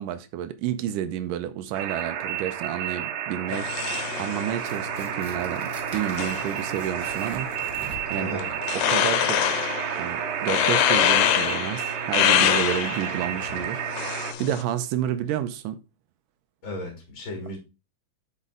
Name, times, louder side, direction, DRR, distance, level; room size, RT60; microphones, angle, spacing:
voice 1, 0.0-7.5 7.8-8.4 8.7-9.4 10.0-15.8, right 11 dB, 90° right, 2.3 m, -30 dB
sound 1, 1.7-14.3, right 9 dB, 75° right, 2.4 m, -31 dB
sound 2, 3.5-14.6, left 11 dB, 85° left, 2.3 m, -26 dB
Tearing, 4.5-8.3, right 3 dB, 40° right, 1.7 m, -45 dB
voice 2, 8.1-8.5 13.2-13.6 16.6-17.6, left 2 dB, 35° left, 3.2 m, -36 dB
8.3 x 5.5 x 3.8 m
omnidirectional pair, 3.8 m